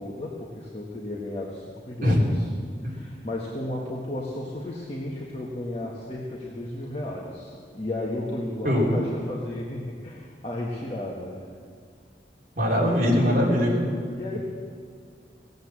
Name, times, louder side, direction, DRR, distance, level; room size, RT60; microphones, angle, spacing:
voice 1, 0.0-2.5 2.8-11.5 14.1-14.4, left 1 dB, 35° left, -4 dB, 1.5 m, -34 dB
voice 2, 8.6-9.0 12.6-13.9, left 1 dB, 50° right, -3 dB, 3.3 m, -21 dB
18.5 x 8.2 x 7.4 m, 2.2 s
head